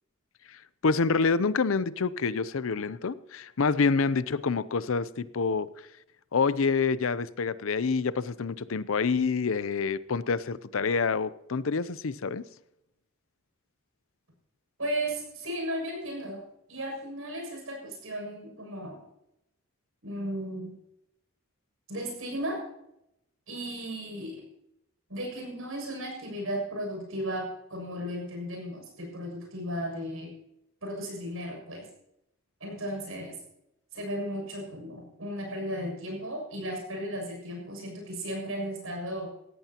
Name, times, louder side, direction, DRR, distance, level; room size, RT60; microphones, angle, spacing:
voice 1, 0.5-5.7 6.3-12.4, left 4 dB, 70° left, 17 dB, 0.6 m, -27 dB
voice 2, 14.8-16.4 16.7-19.0 20.0-20.7 21.9-22.6 23.5-24.4 25.1-30.3 30.8-31.9 32.6-33.4 33.9-39.3, equal, 75° right, 1 dB, 6.8 m, -35 dB
17.5 x 15.0 x 2.9 m, 0.84 s
head